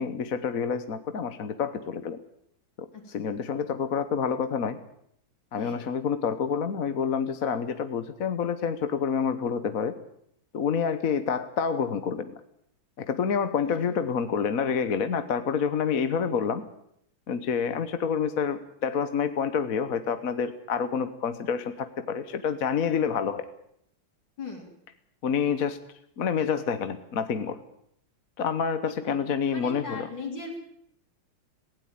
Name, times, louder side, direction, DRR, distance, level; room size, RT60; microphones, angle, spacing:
voice 1, 0.0-2.2 2.8-2.9 3.1-4.8 5.5-9.9 10.5-12.3 13.0-16.6 17.3-23.4 25.2-25.8 26.2-27.6 28.4-30.1, left 6 dB, 50° left, 10 dB, 1.4 m, -28 dB
voice 2, 2.9-3.3 5.6-5.9 13.6-13.8 24.4-24.7 28.9-29.2 29.5-30.6, left 4 dB, 65° left, -2 dB, 4.0 m, -39 dB
18.0 x 17.0 x 8.9 m, 0.71 s
omnidirectional pair, 2.2 m